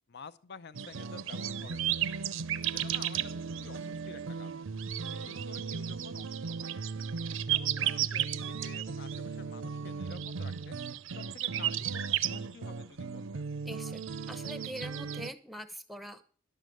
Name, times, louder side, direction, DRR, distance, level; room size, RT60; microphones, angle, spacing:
voice 1, 0.1-2.0 2.7-4.6 5.1-6.8 7.5-10.8 11.1-13.4, left 5 dB, 50° left, 14 dB, 0.6 m, -51 dB
sound 1, 0.7-15.3, right 8 dB, 65° right, 0.6 m, -34 dB
voice 2, 13.6-16.2, equal, ahead, 12 dB, 0.8 m, -43 dB
11.5 x 6.7 x 7.7 m, 0.43 s
head